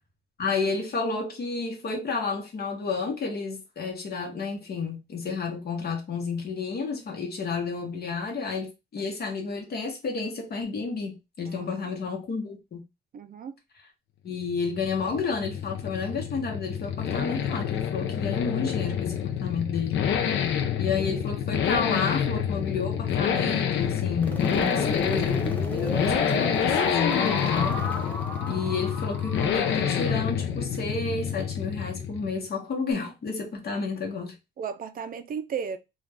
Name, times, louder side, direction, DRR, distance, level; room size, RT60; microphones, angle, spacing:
voice 1, 0.4-12.8 14.2-20.1 20.8-27.9 28.4-34.4, left 4 dB, 55° left, 1.0 m, -31 dB
voice 2, 11.5-11.9 13.1-13.5 34.6-35.8, right 7 dB, 45° right, 0.4 m, -35 dB
sound 1, 14.4-32.5, left 8 dB, 70° left, 0.5 m, -28 dB
sound 2, 24.2-30.1, left 1 dB, 10° left, 0.6 m, -33 dB
2.4 x 2.3 x 3.4 m
cardioid pair, 90°, 20 cm